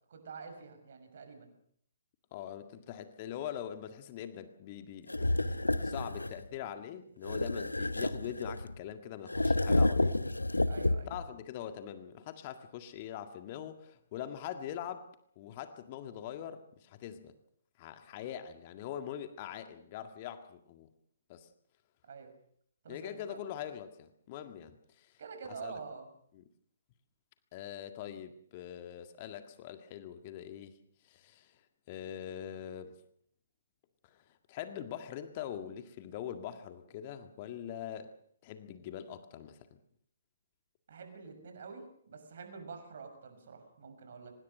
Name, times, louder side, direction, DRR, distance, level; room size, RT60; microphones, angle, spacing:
voice 1, 0.1-1.5 10.7-11.1 22.1-22.3 22.8-23.4 25.2-26.1 40.9-44.3, right 5 dB, 55° right, 7 dB, 6.3 m, -47 dB
voice 2, 2.3-10.2 11.1-15.1 15.4-17.3 17.8-20.9 21.3-21.5 22.9-25.1 25.6-25.7 26.3-26.4 27.5-30.7 31.0-31.6 31.9-32.9 34.0-34.2 34.5-38.1 38.4-39.8, left 10 dB, 35° left, 8 dB, 1.8 m, -43 dB
sound 1, 5.1-6.4 7.2-8.8 9.3-11.3, left 2 dB, 85° left, 1.0 m, -30 dB
25.0 x 20.0 x 6.6 m, 0.66 s
figure-of-eight pair, 130°, 0 cm